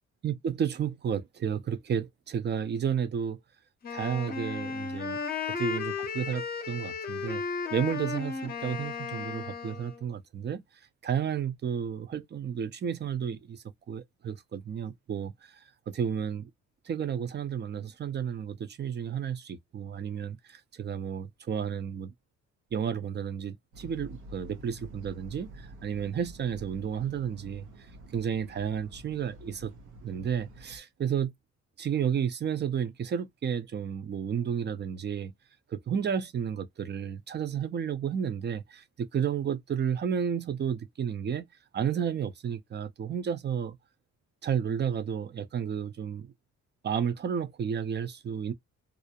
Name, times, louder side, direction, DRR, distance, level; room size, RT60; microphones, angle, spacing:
voice 1, 0.2-3.4 3.9-5.2 5.6-7.4 7.7-10.6 11.0-15.3 15.9-16.5 16.9-22.1 22.7-27.7 28.1-29.7 30.0-31.3 31.8-35.3 35.7-38.8 39.1-41.4 41.7-43.8 44.4-46.3 46.8-48.5, right 8 dB, 35° right, 0.5 m, -32 dB
Wind instrument woodwind instrument, 3.8-10.0, left 5 dB, 30° left, 0.7 m, -35 dB
sound 1, 23.7-30.8, right 1 dB, 85° right, 0.8 m, -48 dB
2.5 x 2.0 x 2.7 m
cardioid pair, 90°, 30 cm